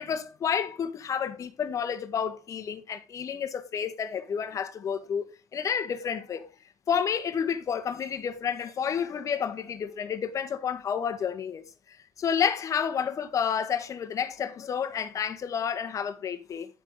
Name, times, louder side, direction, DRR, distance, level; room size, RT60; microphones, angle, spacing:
voice 1, 0.0-5.2 5.5-6.5 6.9-16.7, left 7 dB, 50° left, 1.7 m, -30 dB
10.0 x 7.7 x 3.9 m
supercardioid pair, 75°, 7 cm